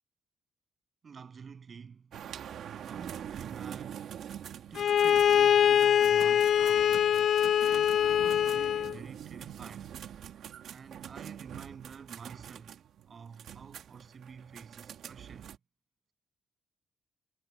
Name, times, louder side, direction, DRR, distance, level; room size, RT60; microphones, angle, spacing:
voice 1, 1.0-4.3 4.7-7.1 7.6-10.0 10.4-15.6, right 6 dB, 35° right, 7.8 m, -49 dB
sound 1, 2.1-15.6, right 9 dB, 70° right, 1.8 m, -45 dB
Bowed string instrument, 4.8-9.0, left 9 dB, 50° left, 0.3 m, -24 dB
wide cardioid pair, 180°, 0 cm